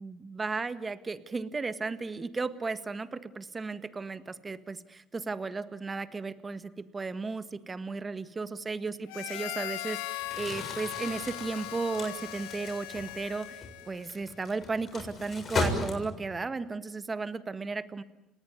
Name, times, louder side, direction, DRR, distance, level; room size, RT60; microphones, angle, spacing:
voice 1, 0.0-18.0, right 4 dB, 25° right, 13 dB, 1.6 m, -35 dB
Harmonica, 9.1-14.1, left 18 dB, 85° left, 0.9 m, -39 dB
Crumpling crinkling, 10.2-16.4, left 3 dB, 40° left, 7.0 m, -37 dB
30.0 x 19.0 x 9.7 m, 0.90 s
supercardioid pair, 75°, 0 cm